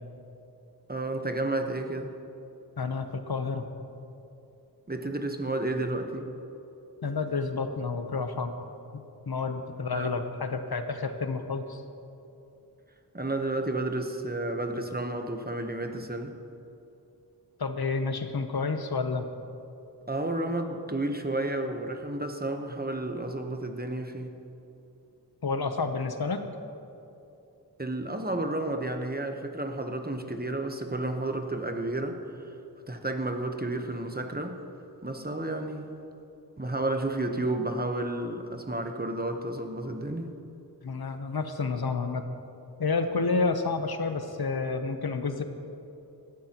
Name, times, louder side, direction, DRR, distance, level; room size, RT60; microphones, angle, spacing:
voice 1, 0.9-2.1 4.9-6.3 9.9-10.1 13.1-16.4 20.1-24.4 27.8-32.5 32.9-34.6 35.0-36.0 36.6-40.3, right 2 dB, 25° right, 5 dB, 1.0 m, -31 dB
voice 2, 2.8-3.7 7.0-8.5 8.9-11.8 17.6-19.3 25.4-26.4 40.8-42.3 42.8-45.4, left 4 dB, 65° left, 7 dB, 0.8 m, -30 dB
17.5 x 13.0 x 2.9 m, 2.8 s
wide cardioid pair, 55°, 40 cm